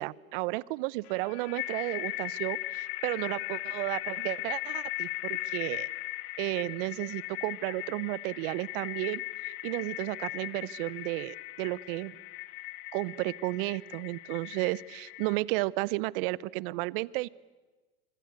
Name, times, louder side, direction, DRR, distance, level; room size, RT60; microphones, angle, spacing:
voice 1, 0.0-5.9 6.4-12.1 12.9-17.3, right 21 dB, 60° right, 22 dB, 0.8 m, -33 dB
sound 1, 1.1-15.4, left 18 dB, 55° left, 1.2 m, -38 dB
25.5 x 23.5 x 8.2 m, 1.3 s
hypercardioid pair, 100°, 31 cm